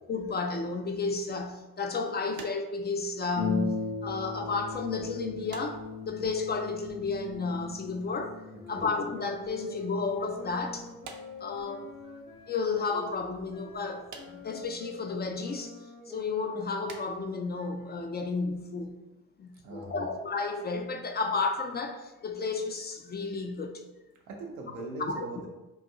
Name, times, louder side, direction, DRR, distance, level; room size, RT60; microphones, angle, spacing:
voice 1, 0.1-8.4 8.7-10.9 11.4-11.9 12.5-15.8 16.1-19.0 19.4-23.8 25.1-25.2, left 4 dB, 25° left, 4 dB, 0.4 m, -32 dB
sound 1, 2.3-4.0 4.3-4.7 5.5-6.4 6.7-7.9 8.2-8.6 9.5-10.1 10.9-12.2 12.5-12.6 14.1-14.8 15.5-15.6 16.0-16.4 16.8-17.2 17.4-17.7 17.9-18.1 18.8-18.9 19.3-19.4 19.6-19.7, right 5 dB, 45° right, 0.6 m, -50 dB
Harp, 3.4-12.5 13.4-13.5 13.9-14.0, left 5 dB, 70° left, 1.2 m, -38 dB
sound 2, 8.5-18.6, left 2 dB, 85° left, 1.0 m, -46 dB
voice 2, 19.6-20.1 24.3-25.5, right 3 dB, 85° right, 0 dB, 0.7 m, -40 dB
3.8 x 2.5 x 2.6 m, 1.0 s
hypercardioid pair, 45°, 42 cm